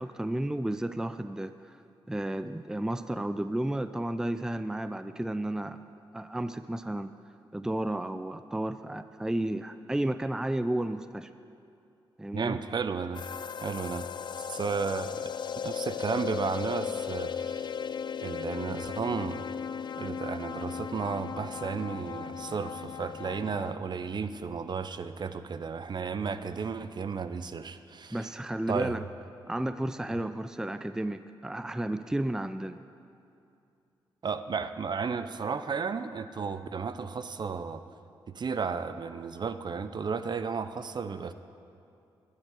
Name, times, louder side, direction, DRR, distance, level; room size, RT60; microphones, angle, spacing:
voice 1, 0.0-1.8 2.1-5.8 6.1-7.1 7.5-11.3 12.2-12.6 28.1-29.0 29.5-32.8, right 1 dB, 5° right, 11 dB, 0.4 m, -32 dB
voice 2, 12.3-13.2 13.6-14.1 14.5-15.3 15.6-17.7 18.2-19.4 20.0-28.3 28.7-29.0 34.2-37.8 38.3-41.3, right 5 dB, 50° right, 11 dB, 0.6 m, -33 dB
sound 1, 13.1-23.7, left 7 dB, 55° left, 0.4 m, -36 dB
12.0 x 6.7 x 9.1 m, 2.6 s
cardioid pair, 60°, 10 cm